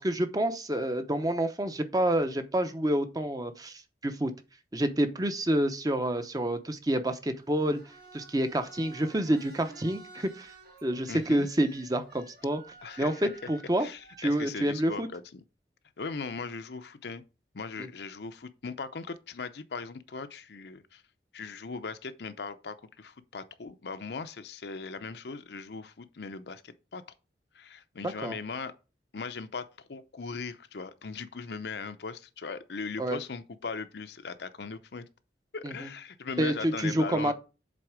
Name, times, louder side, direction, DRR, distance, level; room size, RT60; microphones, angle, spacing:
voice 1, 0.0-4.3 4.7-7.8 8.1-10.5 10.8-12.6 13.0-13.9 14.2-15.1 28.0-28.3 33.0-33.2 35.6-35.7 36.4-37.3, right 1 dB, 20° right, 0.7 m, -28 dB
sound 1, 7.3-14.6, right 3 dB, 60° right, 4.1 m, -53 dB
voice 2, 11.1-11.5 12.8-13.3 13.8-15.4 16.0-17.2 17.5-21.0 21.3-27.0 27.5-28.7 29.1-35.1 35.5-37.3, left 4 dB, 65° left, 0.6 m, -39 dB
7.6 x 4.1 x 4.8 m
head